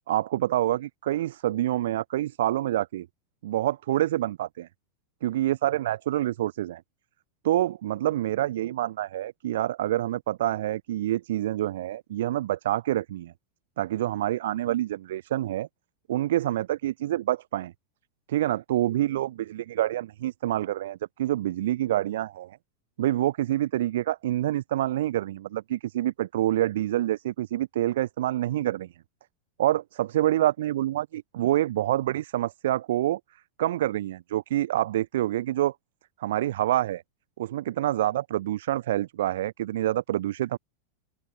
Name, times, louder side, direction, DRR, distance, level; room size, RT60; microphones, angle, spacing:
voice 1, 0.1-3.1 3.4-4.7 5.2-6.8 7.4-13.3 13.8-15.7 16.1-17.7 18.3-22.6 23.0-28.9 29.6-33.2 33.6-35.7 36.2-37.0 37.4-40.6, right 13 dB, 80° right, 0.8 m, -27 dB
open air
supercardioid pair, 170°, 0 cm